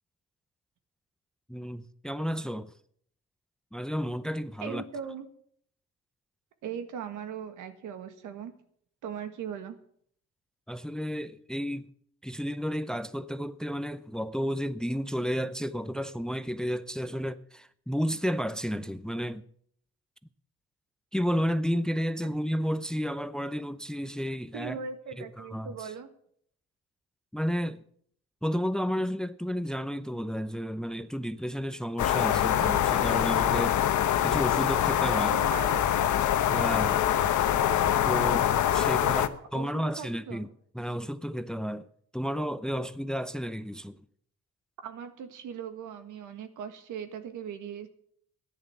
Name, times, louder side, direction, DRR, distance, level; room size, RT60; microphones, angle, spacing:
voice 1, 1.5-2.7 3.7-4.8 10.7-11.9 12.2-19.4 21.1-24.8 25.2-25.9 27.3-27.8 28.4-33.8 34.2-35.4 36.5-37.1 38.0-39.3 39.5-40.5 40.7-41.9 42.1-44.0, equal, ahead, 0.6 m, -32 dB
voice 2, 4.6-5.3 6.6-8.5 9.0-9.8 22.2-22.3 24.5-26.1 35.3-36.0 39.0-40.5 44.8-47.9, right 7 dB, 85° right, 1.8 m, -39 dB
sound 1, 32.0-39.3, left 10 dB, 75° left, 1.0 m, -24 dB
14.0 x 10.5 x 7.1 m
cardioid pair, 90°, 30 cm